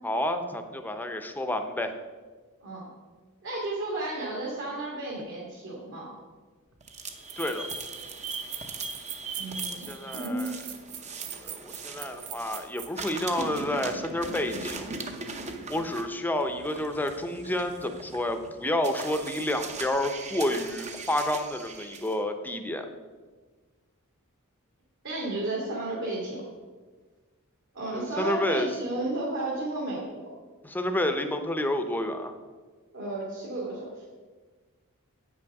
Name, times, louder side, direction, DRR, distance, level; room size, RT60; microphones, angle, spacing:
voice 1, 0.0-1.9 7.4-7.7 9.9-10.6 11.3-14.9 15.7-22.9 27.9-28.7 30.6-32.3, left 1 dB, 10° left, 7 dB, 0.6 m, -30 dB
voice 2, 3.4-6.1 9.4-10.4 25.0-26.4 27.7-30.2 32.9-34.0, right 2 dB, 60° right, -6 dB, 2.1 m, -33 dB
sound 1, 6.7-6.8 7.3-13.1, right 9 dB, 90° right, 1.0 m, -41 dB
sound 2, 6.8-12.7 12.9-22.2, right 3 dB, 30° right, 0.7 m, -40 dB
8.1 x 6.2 x 5.9 m, 1.4 s
head